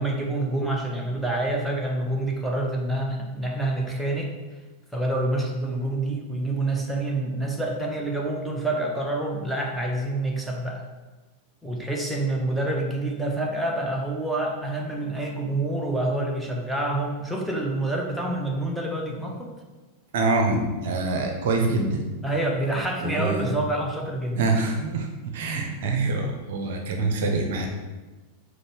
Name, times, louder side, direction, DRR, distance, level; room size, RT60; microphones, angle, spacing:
voice 1, 0.0-4.3 4.9-10.8 11.6-19.5 22.2-24.4, right 2 dB, ahead, -1 dB, 0.6 m, -27 dB
voice 2, 20.1-22.1 23.0-23.6 24.3-27.7, right 3 dB, 55° right, 3 dB, 0.5 m, -25 dB
5.0 x 2.0 x 4.5 m, 1.2 s
figure-of-eight pair, 90°, 0 cm